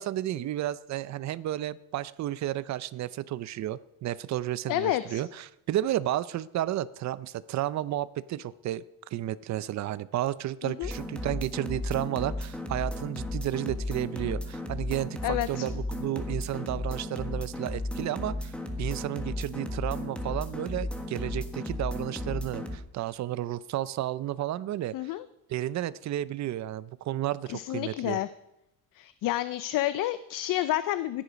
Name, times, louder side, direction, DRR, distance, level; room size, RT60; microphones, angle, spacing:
voice 1, 0.0-8.8 9.1-25.1 25.5-28.2, right 13 dB, 45° right, 17 dB, 0.6 m, -32 dB
voice 2, 4.7-5.2 10.6-10.9 15.2-15.7 24.9-25.2 27.5-28.3 29.0-31.2, left 14 dB, 60° left, 14 dB, 0.6 m, -29 dB
sound 1, 10.8-22.8, left 1 dB, 5° left, 1.4 m, -34 dB
15.5 x 10.0 x 5.1 m, 0.87 s
cardioid pair, 145°, 38 cm